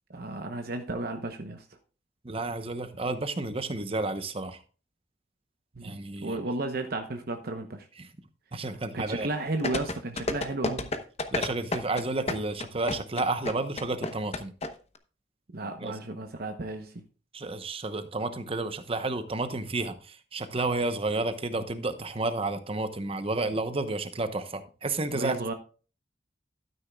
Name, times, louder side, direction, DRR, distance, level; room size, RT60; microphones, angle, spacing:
voice 1, 0.1-1.6 5.7-7.9 8.9-10.9 15.5-17.0 25.1-25.5, right 2 dB, 60° right, 0.9 m, -33 dB
voice 2, 2.2-4.6 5.8-6.4 8.0-8.1 8.5-9.3 11.3-14.5 15.8-15.9 17.3-25.4, right 2 dB, 35° right, 0.9 m, -31 dB
sound 1, 9.6-14.7 14.9-15.0, left 2 dB, 35° left, 1.0 m, -30 dB
12.5 x 9.8 x 2.3 m
head